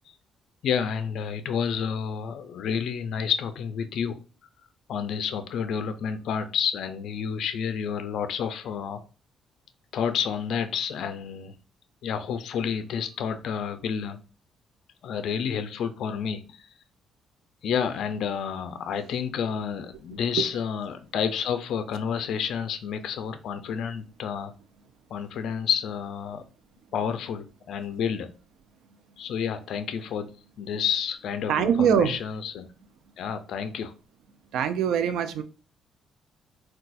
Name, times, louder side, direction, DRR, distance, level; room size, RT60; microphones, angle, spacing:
voice 1, 0.6-4.2 4.9-9.0 9.9-11.6 12.0-14.2 15.0-16.7 17.6-24.5 25.1-26.4 26.9-28.3 29.2-30.3 30.6-32.7 33.2-33.9, left 7 dB, 75° left, 10 dB, 0.4 m, -30 dB
voice 2, 31.5-32.2 34.5-35.4, right 8 dB, 80° right, 10 dB, 0.4 m, -23 dB
3.9 x 2.2 x 2.3 m, 0.36 s
cardioid pair, 90°, 0 cm